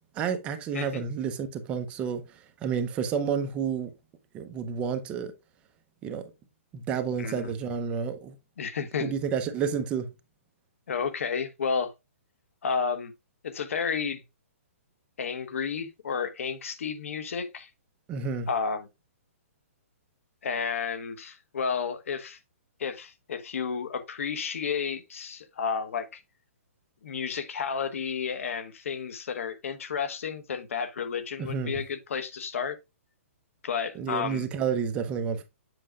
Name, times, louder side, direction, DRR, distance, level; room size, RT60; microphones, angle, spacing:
voice 1, 0.2-2.2 2.6-3.9 4.3-5.3 6.0-6.2 6.7-8.3 9.0-10.1 18.1-18.5 31.4-31.7 34.0-35.4, right 6 dB, 15° right, 0.7 m, -30 dB
voice 2, 7.2-7.6 8.6-9.1 10.9-11.9 12.6-13.1 13.4-14.2 15.2-17.7 18.5-18.9 20.4-22.4 22.8-26.2 27.0-32.8 33.6-34.5, left 6 dB, 70° left, 1.1 m, -31 dB
7.7 x 6.2 x 2.4 m
hypercardioid pair, 165°, 8 cm